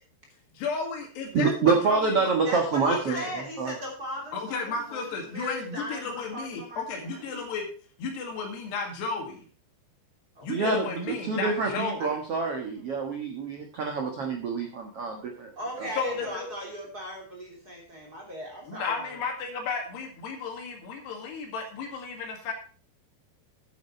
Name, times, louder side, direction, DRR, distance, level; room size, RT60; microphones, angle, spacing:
voice 1, 0.6-2.3 2.9-3.3 4.3-7.7 8.0-9.5 10.4-12.2 16.0-16.5 18.7-22.5, left 4 dB, 70° left, 3 dB, 4.0 m, -33 dB
voice 2, 1.3-3.2 3.6-3.7 10.5-15.5 15.8-15.9, right 4 dB, 75° right, 2 dB, 1.3 m, -27 dB
voice 3, 2.4-7.2 10.4-10.6 12.0-12.1 12.5-12.7 15.6-19.2, equal, 25° right, -2 dB, 3.1 m, -38 dB
10.5 x 8.6 x 4.4 m, 0.41 s
omnidirectional pair, 5.2 m